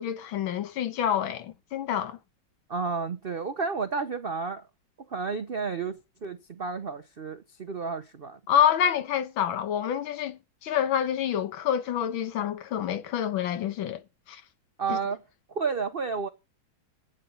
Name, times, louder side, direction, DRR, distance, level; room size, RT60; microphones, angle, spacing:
voice 1, 0.0-2.2 8.5-14.0 14.3-14.4 14.9-15.0, left 9 dB, 75° left, 1.7 m, -27 dB
voice 2, 2.7-4.7 5.1-8.4 14.8-15.2 15.5-16.3, right 5 dB, 80° right, 0.5 m, -31 dB
11.0 x 9.1 x 5.5 m
omnidirectional pair, 2.2 m